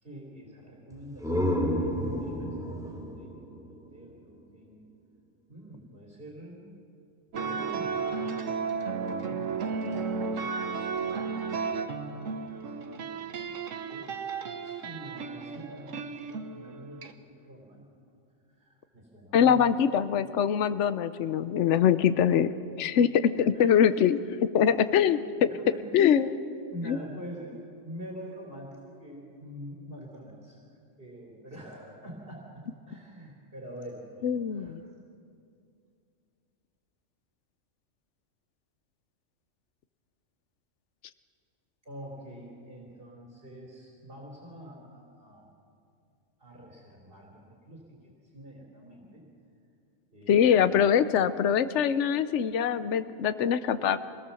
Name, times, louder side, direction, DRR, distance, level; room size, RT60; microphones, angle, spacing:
voice 1, 0.0-1.9 2.2-4.8 5.5-6.7 7.3-8.4 9.2-10.5 10.9-14.1 14.6-17.9 18.6-19.6 23.5-23.9 25.5-25.9 26.7-27.6 27.8-30.6 31.0-34.8 41.8-45.5 46.4-49.2 50.1-51.0, equal, 45° right, -2 dB, 3.4 m, -46 dB
sound 1, 0.9-4.6, equal, 5° right, 2.6 m, -31 dB
sound 2, 7.3-17.1, right 5 dB, 85° right, 1.4 m, -34 dB
voice 2, 19.3-25.5 25.9-26.4 26.8-27.0 34.2-34.8 50.3-54.0, left 8 dB, 70° left, 13 dB, 1.0 m, -23 dB
25.0 x 18.0 x 7.0 m, 2.4 s
omnidirectional pair, 1.3 m